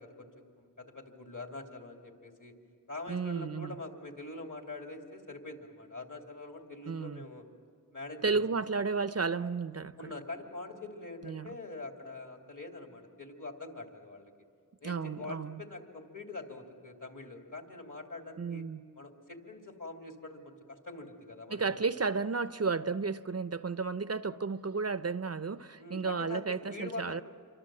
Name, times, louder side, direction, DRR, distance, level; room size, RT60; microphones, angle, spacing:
voice 1, 0.0-2.5 2.9-7.4 7.9-8.4 10.0-14.3 14.8-18.7 19.0-21.8 25.8-27.2, left 2 dB, 55° left, 2.8 m, -44 dB
voice 2, 3.1-3.7 6.9-7.2 8.2-10.1 11.2-11.5 14.8-15.6 18.4-18.8 21.5-27.2, right 4 dB, 45° right, 0.5 m, -33 dB
27.5 x 24.5 x 7.6 m
wide cardioid pair, 50°, 36 cm